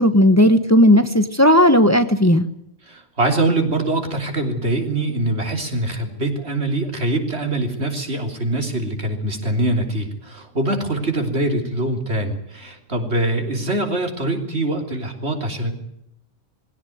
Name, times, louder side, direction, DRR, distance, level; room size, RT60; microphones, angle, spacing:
voice 1, 0.0-2.5, left 1 dB, 15° left, 10 dB, 1.1 m, -14 dB
voice 2, 2.8-15.8, right 2 dB, 75° right, 4 dB, 3.7 m, -23 dB
21.0 x 16.5 x 9.3 m, 0.76 s
omnidirectional pair, 1.1 m